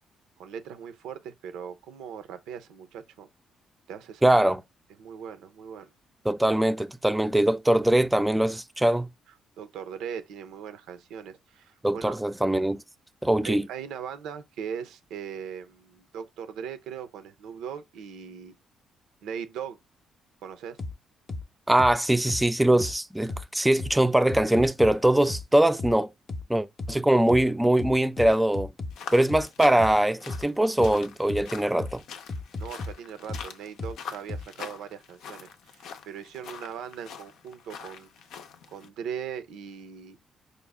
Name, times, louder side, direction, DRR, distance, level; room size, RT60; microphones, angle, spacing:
voice 1, 0.4-3.3 3.9-4.3 5.0-5.9 9.6-12.2 13.4-18.6 19.2-19.8 20.4-20.8 32.6-38.1 38.7-40.2, right 8 dB, 90° right, 0.6 m, -39 dB
voice 2, 4.2-4.6 6.3-9.1 11.8-12.8 13.2-13.7 21.7-26.1 26.5-28.7 29.1-32.0, right 1 dB, 10° right, 0.4 m, -22 dB
sound 1, 20.8-20.9 21.3-21.4 21.8-21.9 22.3-22.4 22.8-22.9 23.3-23.4 23.8-23.9 24.3-24.9 25.3-25.4 25.8-25.9 26.3-26.4 26.8-26.9 27.3-27.4 27.8-28.9 29.3-29.4 29.8-29.9 30.3-30.4 30.8-30.9 31.3-31.4 31.8-31.9 32.3-32.9 33.3-33.4 33.8-33.9 34.3-34.4, left 2 dB, 35° left, 0.6 m, -34 dB
sound 2, 28.9-38.9, left 7 dB, 80° left, 0.5 m, -44 dB
5.1 x 2.0 x 3.4 m
cardioid pair, 90°, 0 cm